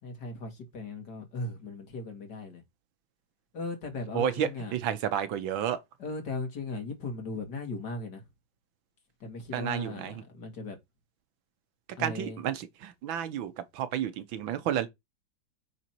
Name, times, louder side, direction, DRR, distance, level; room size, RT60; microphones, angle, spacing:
voice 1, 0.0-2.6 3.5-4.8 6.0-8.3 9.2-10.8 12.0-12.4, left 2 dB, 60° left, 2.7 m, -37 dB
voice 2, 4.1-5.8 9.5-10.2 12.0-14.9, right 9 dB, 80° right, 1.7 m, -31 dB
9.2 x 4.0 x 4.5 m
omnidirectional pair, 2.1 m